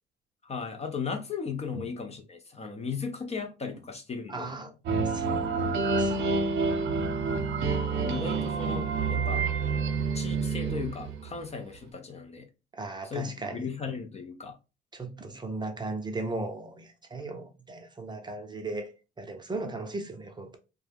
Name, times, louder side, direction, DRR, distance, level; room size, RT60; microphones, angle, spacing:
voice 1, 0.4-4.6 8.0-9.4 10.1-12.5 13.0-14.6, left 5 dB, 35° left, 0.5 m, -36 dB
voice 2, 4.3-4.7 5.0-6.2 12.7-13.7 14.9-18.9 19.2-20.6, right 2 dB, 20° right, 0.6 m, -37 dB
sound 1, 4.8-11.4, right 4 dB, 70° right, 0.6 m, -28 dB
2.3 x 2.1 x 3.3 m
cardioid pair, 90°, 20 cm